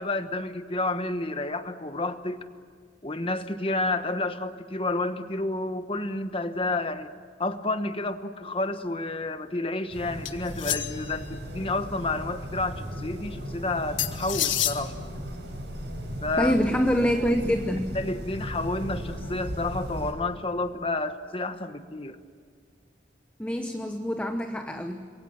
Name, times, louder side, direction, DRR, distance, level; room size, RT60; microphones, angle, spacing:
voice 1, 0.0-2.4 3.0-7.1 7.4-14.9 16.2-16.5 17.9-22.2, left 2 dB, 30° left, 9 dB, 1.2 m, -30 dB
sound 1, 9.9-20.1, equal, 70° right, 6.8 m, -37 dB
sound 2, 10.2-11.2 14.0-14.8, left 12 dB, 90° left, 1.7 m, -28 dB
voice 2, 16.4-18.0 23.4-25.1, equal, 5° left, 5 dB, 1.0 m, -26 dB
27.0 x 23.0 x 7.6 m, 2.1 s
head